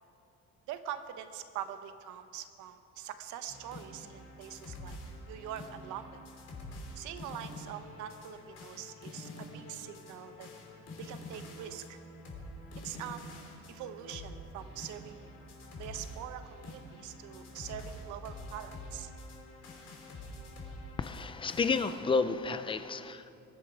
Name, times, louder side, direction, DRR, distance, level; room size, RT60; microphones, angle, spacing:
voice 1, 0.7-5.0 5.3-6.2 6.9-10.5 11.0-12.0 12.8-13.4 13.7-15.3 15.8-19.1, right 10 dB, 85° right, 10 dB, 1.0 m, -43 dB
sound 1, 3.5-22.0, left 1 dB, 55° left, 3.2 m, -47 dB
voice 2, 21.0-23.3, left 4 dB, 15° left, 11 dB, 0.6 m, -31 dB
21.5 x 11.0 x 4.9 m, 2.6 s
cardioid pair, 145°, 29 cm